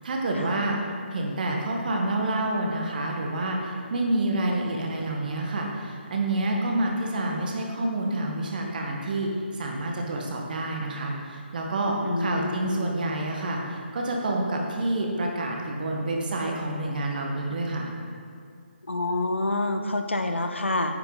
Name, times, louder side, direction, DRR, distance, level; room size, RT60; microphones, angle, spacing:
voice 1, 0.0-0.8 1.1-9.3 9.6-17.9, right 2 dB, 50° right, 0 dB, 1.4 m, -28 dB
voice 2, 12.0-12.9 18.9-21.0, left 2 dB, 90° left, 6 dB, 0.7 m, -27 dB
9.3 x 5.7 x 3.9 m, 2.3 s
figure-of-eight pair, 150°, 6 cm